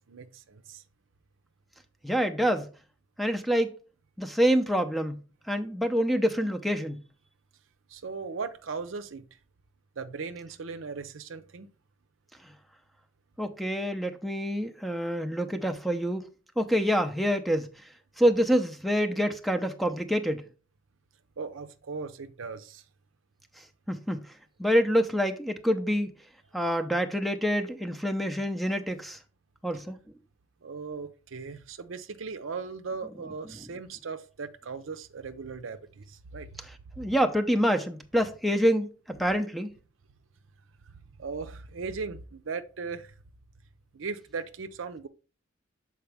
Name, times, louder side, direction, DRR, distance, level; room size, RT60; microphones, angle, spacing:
voice 1, 0.1-0.8 7.9-9.2 10.0-11.7 21.4-22.8 30.6-36.5 37.0-37.1 41.2-43.1 43.9-45.1, right 4 dB, 75° right, 0.6 m, -38 dB
voice 2, 2.0-2.7 3.2-3.7 4.2-5.2 5.5-7.0 13.4-16.2 16.6-17.7 18.2-20.4 23.9-24.2 24.6-26.1 26.5-29.2 29.6-30.0 37.0-39.7, equal, ahead, 0.6 m, -26 dB
7.0 x 4.7 x 3.4 m
head